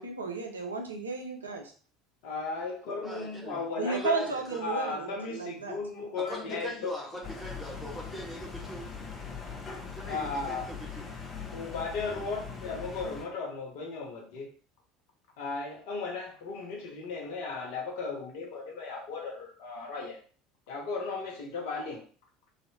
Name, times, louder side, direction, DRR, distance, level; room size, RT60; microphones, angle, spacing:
voice 1, 0.0-1.6 3.8-5.8, right 4 dB, 85° right, 0.5 m, -33 dB
voice 2, 2.2-4.3 4.6-6.9 10.1-10.7 11.5-14.5 15.4-20.2 20.7-22.0, left 4 dB, 60° left, 0.9 m, -36 dB
voice 3, 3.0-4.6 6.2-8.9 9.9-11.1 12.0-12.3, equal, 10° left, 1.5 m, -42 dB
sound 1, 7.2-13.3, left 5 dB, 25° left, 1.0 m, -41 dB
3.0 x 2.7 x 2.9 m
figure-of-eight pair, 65°, 0 cm